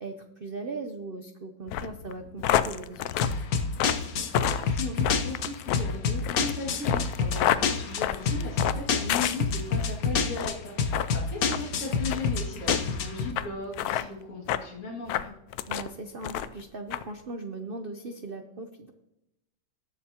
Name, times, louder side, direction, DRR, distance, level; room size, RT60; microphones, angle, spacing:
voice 1, 0.0-3.3 15.7-18.9, right 3 dB, 70° right, 5 dB, 0.5 m, -39 dB
sound 1, 1.7-9.9 10.3-10.6 10.9-11.1 11.5-11.6 12.1-12.3 12.7-12.8 13.4-13.5 13.7-14.1 14.5-14.7 15.1-15.9 16.2-16.6 16.9-17.0, left 11 dB, 85° left, 0.8 m, -29 dB
sound 2, 3.2-13.3, left 5 dB, 55° left, 1.2 m, -28 dB
voice 2, 4.5-15.3, left 3 dB, 35° left, -5 dB, 2.6 m, -37 dB
19.0 x 7.3 x 2.9 m, 0.88 s
omnidirectional pair, 2.2 m